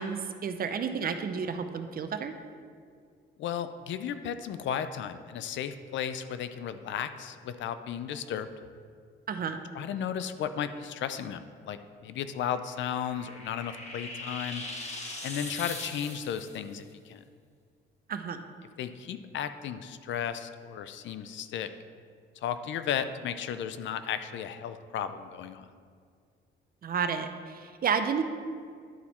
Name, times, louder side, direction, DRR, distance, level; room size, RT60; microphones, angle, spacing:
voice 1, 0.0-2.4 9.3-9.6 18.1-18.4 26.8-28.2, right 6 dB, 45° right, 8 dB, 0.6 m, -31 dB
voice 2, 3.4-8.5 9.7-14.6 15.2-17.2 18.8-21.7 22.4-25.7, left 8 dB, 70° left, 11 dB, 0.5 m, -34 dB
sound 1, 12.6-16.6, left 2 dB, 35° left, 1.3 m, -40 dB
11.0 x 4.2 x 4.3 m, 2.1 s
cardioid pair, 90°, 20 cm